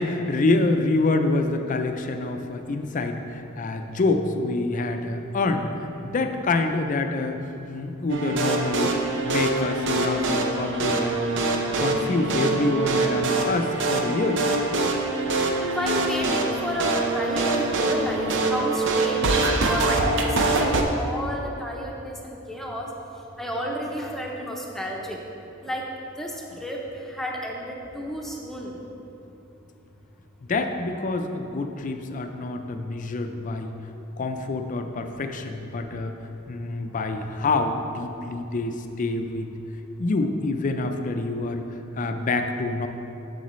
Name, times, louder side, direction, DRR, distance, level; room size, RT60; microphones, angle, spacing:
voice 1, 0.0-5.7 6.0-7.4 7.7-8.9 9.2-11.4 11.8-14.5 30.5-33.7 34.2-36.1 36.5-39.5 40.0-41.6 42.0-42.9, left 3 dB, 40° left, 6 dB, 0.4 m, -26 dB
sound 1, 8.1-20.8, right 2 dB, 60° right, 0.6 m, -24 dB
voice 2, 15.6-22.9 23.4-25.2 25.6-25.8 26.2-28.8, equal, ahead, -2 dB, 0.7 m, -31 dB
8.0 x 6.9 x 3.1 m, 2.9 s
head